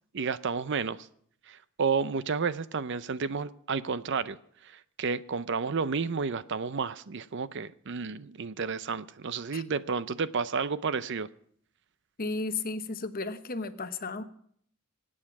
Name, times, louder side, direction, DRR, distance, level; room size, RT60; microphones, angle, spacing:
voice 1, 0.1-1.1 1.5-4.4 5.0-11.3, right 5 dB, 55° right, 0.5 m, -31 dB
voice 2, 12.2-14.2, left 3 dB, 40° left, 0.9 m, -34 dB
24.5 x 8.8 x 5.9 m
head